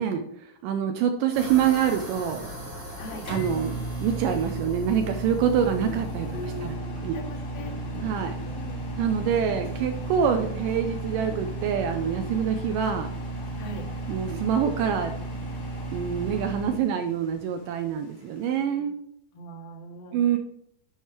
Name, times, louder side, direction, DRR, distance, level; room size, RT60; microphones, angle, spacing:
voice 1, 0.0-2.5 3.3-6.8 7.0-7.2 8.0-8.4 9.0-13.1 14.1-15.1 15.9-19.0 20.1-20.4, right 8 dB, 85° right, 6 dB, 1.9 m, -26 dB
sound 1, 1.3-6.7, right 1 dB, 40° right, 2.5 m, -41 dB
Microwave oven, 1.7-16.8, right 2 dB, 30° left, 3.8 m, -34 dB
Thunder / Rain, 1.9-18.6, left 4 dB, 75° left, 3.6 m, -48 dB
voice 2, 3.0-3.3 6.3-7.8 8.4-8.9 13.6-13.9 19.3-20.4, left 1 dB, 55° left, 1 dB, 2.0 m, -40 dB
9.8 x 4.7 x 4.4 m, 0.72 s
omnidirectional pair, 4.6 m